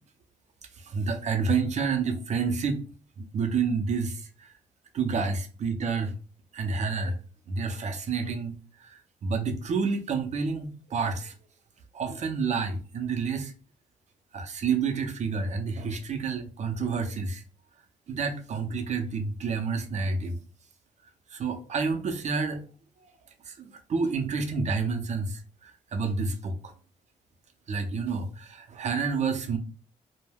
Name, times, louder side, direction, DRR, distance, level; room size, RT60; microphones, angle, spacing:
voice 1, 0.8-2.8 3.2-4.5 4.9-6.1 6.5-7.2 7.5-11.3 11.9-13.5 14.3-17.4 18.1-20.4 21.3-22.6 23.4-26.7 27.7-29.6, right 5 dB, 50° right, 0.6 m, -29 dB
2.2 x 2.1 x 3.3 m
cardioid pair, 85°, 15 cm